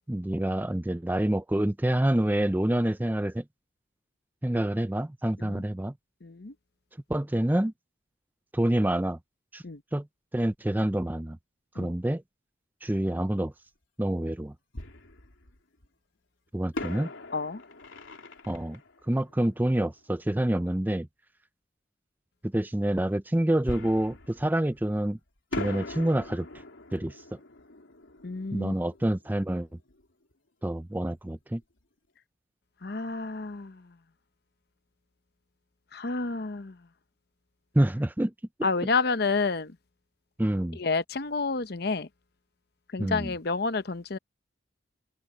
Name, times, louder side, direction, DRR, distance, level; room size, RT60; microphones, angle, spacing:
voice 1, 0.1-3.4 4.4-5.9 7.1-7.7 8.5-9.2 9.5-9.6 9.9-10.1 10.3-11.4 11.8-12.2 12.8-13.5 14.0-14.5 16.5-17.1 18.5-18.8 19.1-21.1 22.4-25.2 25.5-26.5 26.9-27.4 28.5-29.7 30.6-31.6 37.7-38.3 38.6-38.7 40.4-40.8 43.0-43.3, right 1 dB, 10° right, 0.4 m, -27 dB
voice 2, 6.2-6.5 9.6-9.8 11.8-11.9 17.3-17.6 28.2-28.7 32.8-33.9 35.9-36.8 38.6-39.8 40.8-42.1 42.9-44.2, left 4 dB, 55° left, 0.8 m, -29 dB
Fireworks, 13.4-13.5 14.7-15.9 16.7-20.2 23.7-25.1 25.5-30.1 30.3-30.4 30.9-31.1, left 2 dB, 85° left, 3.4 m, -41 dB
head